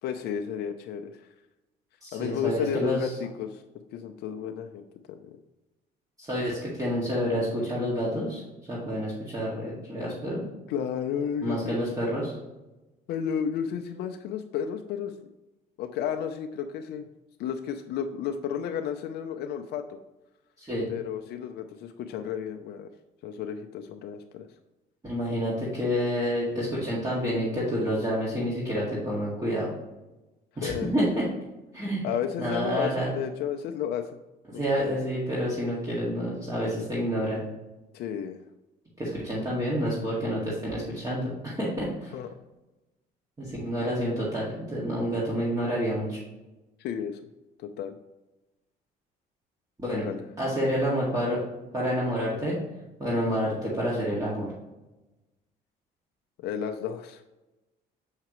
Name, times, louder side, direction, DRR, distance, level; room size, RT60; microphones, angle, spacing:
voice 1, 0.0-1.3 2.1-3.6 3.9-5.4 10.7-11.8 13.1-15.1 15.8-17.1 17.4-20.0 20.9-22.9 23.2-24.5 30.6-30.9 32.0-34.2 34.5-34.9 37.9-38.4 42.1-42.3 46.8-47.2 47.6-48.0 49.9-50.2 56.4-57.2, left 8 dB, 75° left, 5 dB, 0.5 m, -32 dB
voice 2, 2.0-3.1 6.2-8.4 8.7-10.5 11.4-12.3 20.6-20.9 25.0-29.7 30.6-31.3 31.7-32.1 32.4-33.1 34.5-37.5 39.0-42.1 43.4-46.2 49.8-50.1 50.4-51.4 51.7-52.6 53.0-54.5, equal, 20° right, -7 dB, 1.9 m, -28 dB
6.5 x 5.8 x 3.0 m, 1.0 s
cardioid pair, 110°, 17 cm